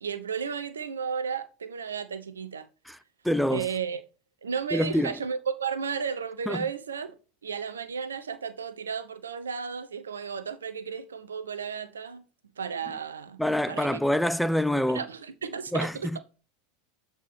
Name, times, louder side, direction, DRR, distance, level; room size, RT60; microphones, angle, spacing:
voice 1, 0.0-2.7 3.5-4.0 4.4-7.1 7.4-12.2 12.6-13.4 13.7-14.0 14.9-16.2, right 6 dB, 85° right, 0.9 m, -33 dB
voice 2, 3.2-3.7 4.7-5.1 6.5-6.6 13.4-15.0 15.7-16.2, equal, ahead, 0.4 m, -26 dB
8.2 x 4.7 x 4.3 m
hypercardioid pair, 90°, 0 cm